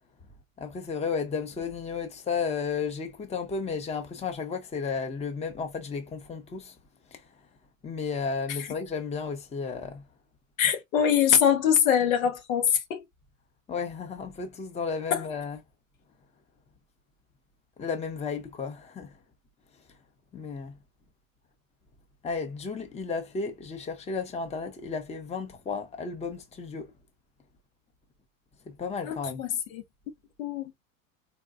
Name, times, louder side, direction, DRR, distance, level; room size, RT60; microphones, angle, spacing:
voice 1, 0.6-6.8 7.1-7.2 7.8-10.0 13.7-15.6 17.8-19.2 20.3-20.7 22.2-26.9 28.7-29.4, left 5 dB, 15° left, 0.8 m, -33 dB
voice 2, 10.6-13.0 15.1-15.2 29.1-29.8 30.4-30.7, left 8 dB, 80° left, 1.0 m, -24 dB
3.9 x 2.2 x 2.4 m
hypercardioid pair, 105°, 41 cm